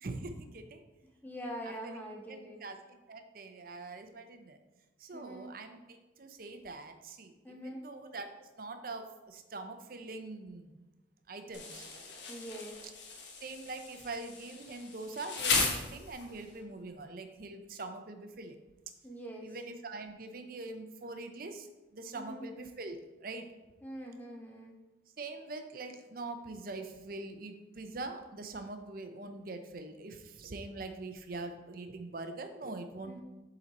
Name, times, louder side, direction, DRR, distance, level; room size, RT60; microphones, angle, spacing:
voice 1, 0.0-0.8 1.8-1.9 2.3-2.8 3.1-4.6 5.0-7.3 7.6-10.8 11.3-11.9 13.4-18.6 19.4-23.5 25.2-33.2, right 3 dB, 50° right, 7 dB, 0.6 m, -43 dB
voice 2, 1.2-2.6 5.1-5.5 7.4-7.9 12.3-12.9 19.0-19.6 22.1-22.5 23.8-24.7 33.0-33.2, equal, 10° left, 0 dB, 0.9 m, -44 dB
Insect, 11.5-16.5, left 4 dB, 70° left, 1.1 m, -36 dB
7.5 x 3.9 x 4.1 m, 1.1 s
head